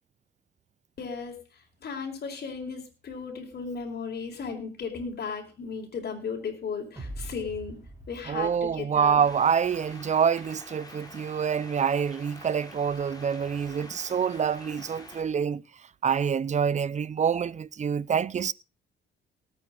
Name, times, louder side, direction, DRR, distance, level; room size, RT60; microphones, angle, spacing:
voice 1, 1.0-1.4 1.8-7.8 8.1-9.2, left 5 dB, 55° left, 4.6 m, -35 dB
sound 1, 7.0-10.2, right 1 dB, 15° right, 3.8 m, -44 dB
voice 2, 8.3-15.6 16.0-18.5, right 7 dB, 35° right, 0.5 m, -26 dB
sound 2, 9.2-15.2, left 2 dB, 20° left, 3.3 m, -47 dB
19.0 x 8.8 x 3.9 m
cardioid pair, 90°, 20 cm